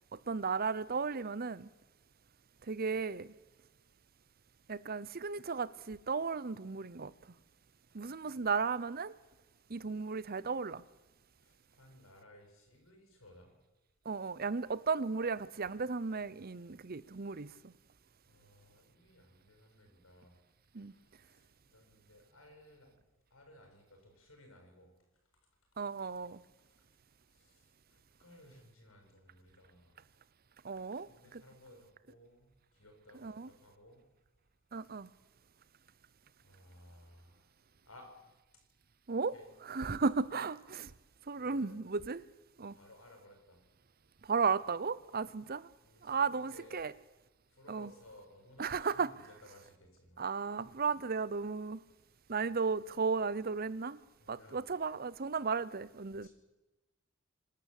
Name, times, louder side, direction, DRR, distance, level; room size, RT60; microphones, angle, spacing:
voice 1, 0.3-1.7 2.7-3.3 4.7-7.1 7.9-9.1 9.7-10.8 14.0-17.7 20.7-20.9 25.8-26.4 30.6-31.4 33.2-33.5 34.7-35.1 39.1-39.3 39.7-40.9 41.3-42.2 42.6-42.8 44.2-45.7 46.0-46.9 47.7-47.9 48.6-49.1 50.2-51.8 52.3-54.0 54.3-56.3, right 5 dB, 45° right, 0.8 m, -35 dB
voice 2, 11.4-13.5 18.3-20.3 21.2-21.4 21.7-23.0 23.3-24.9 27.3-27.6 27.9-30.0 30.9-34.0 36.4-37.4 37.9-38.1 39.3-39.5 41.4-41.9 42.7-43.6 45.8-46.9 47.6-50.2 54.2-54.6 56.2-56.3, left 1 dB, 85° left, 7.5 m, -58 dB
27.0 x 12.5 x 8.4 m
head